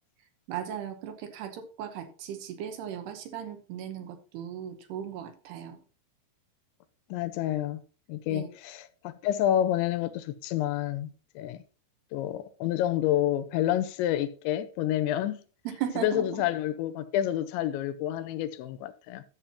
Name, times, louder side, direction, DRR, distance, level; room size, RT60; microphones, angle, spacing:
voice 1, 0.5-5.8 8.3-8.5 15.7-16.3, right 9 dB, 75° right, 2.8 m, -37 dB
voice 2, 7.1-7.8 8.1-11.6 12.1-15.4 16.0-19.2, left 12 dB, 85° left, 2.9 m, -29 dB
13.0 x 7.7 x 2.8 m
omnidirectional pair, 5.3 m